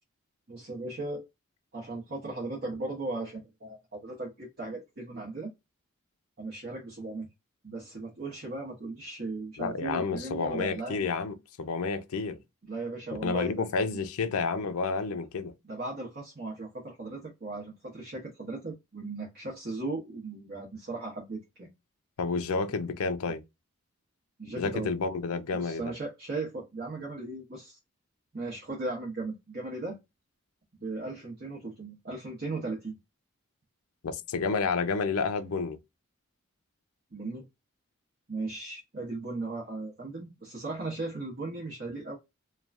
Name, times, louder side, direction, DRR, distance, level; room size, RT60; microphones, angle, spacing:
voice 1, 0.5-1.3 1.7-5.5 6.4-7.3 7.6-11.1 12.6-13.5 15.6-21.7 24.4-24.9 25.5-27.8 28.3-30.0 30.7-33.0 37.1-37.4 38.3-42.2, right 2 dB, 45° right, 0.8 m, -37 dB
voice 2, 9.6-12.4 13.1-15.5 22.2-23.4 24.6-25.9 34.0-35.8, left 4 dB, 85° left, 0.5 m, -30 dB
3.1 x 2.2 x 2.4 m
head